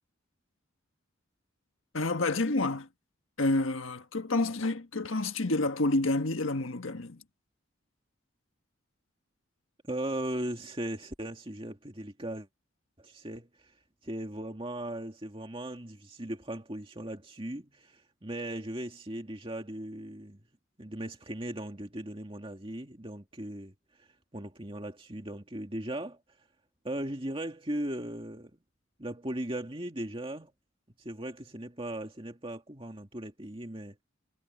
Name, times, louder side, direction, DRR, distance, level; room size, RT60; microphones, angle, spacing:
voice 1, 1.9-2.9 3.4-7.2, left 2 dB, 75° left, 1.6 m, -29 dB
voice 2, 9.9-12.5 13.0-13.7 14.0-20.4 20.8-23.7 24.0-24.1 24.3-26.2 26.8-28.6 29.0-30.5 31.0-34.0, right 1 dB, 25° right, 2.3 m, -38 dB
head